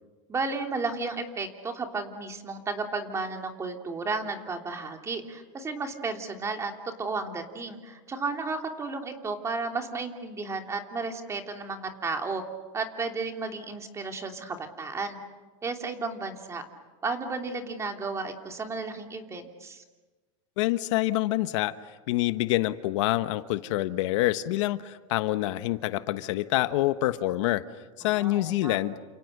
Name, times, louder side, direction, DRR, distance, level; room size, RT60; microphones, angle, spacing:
voice 1, 0.3-12.4 12.7-15.2 15.6-16.6 17.0-19.8 28.0-28.8, right 3 dB, 20° right, 4 dB, 3.1 m, -33 dB
voice 2, 20.6-21.7 22.1-27.6 28.0-28.9, left 16 dB, 75° left, 11 dB, 1.2 m, -26 dB
30.0 x 28.0 x 6.7 m, 1.3 s
supercardioid pair, 145°, 16 cm